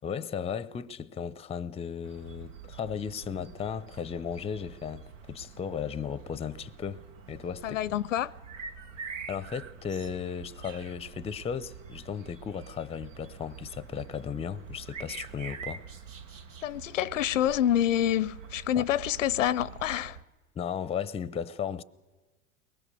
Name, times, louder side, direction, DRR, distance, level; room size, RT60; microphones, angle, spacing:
voice 1, 0.0-7.9 9.3-15.9 18.8-18.9 20.6-21.8, left 7 dB, 15° left, 0.6 m, -35 dB
sound 1, 2.0-20.2, right 6 dB, 85° right, 1.2 m, -46 dB
voice 2, 7.6-8.3 16.6-20.2, left 11 dB, 90° left, 0.7 m, -27 dB
22.5 x 20.5 x 6.8 m
hypercardioid pair, 95°, 37 cm